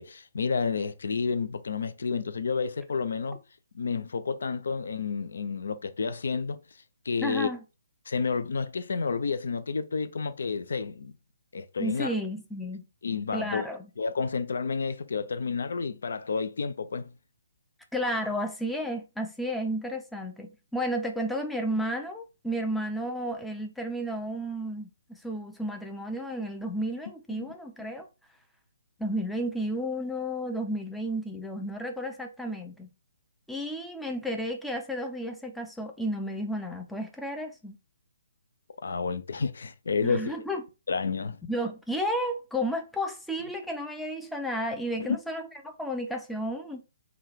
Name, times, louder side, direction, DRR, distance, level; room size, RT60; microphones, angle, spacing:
voice 1, 0.0-3.4 3.7-6.6 7.1-7.5 8.1-11.1 11.5-12.1 13.0-13.7 14.0-17.1 27.4-27.5 38.8-40.4 40.9-41.4, left 5 dB, 60° left, 0.4 m, -30 dB
voice 2, 7.2-7.6 11.8-12.8 13.3-13.8 17.9-28.1 29.0-32.9 33.5-37.8 40.0-40.6 41.4-46.8, equal, ahead, 0.5 m, -32 dB
3.6 x 2.3 x 3.4 m
figure-of-eight pair, 135°, 0 cm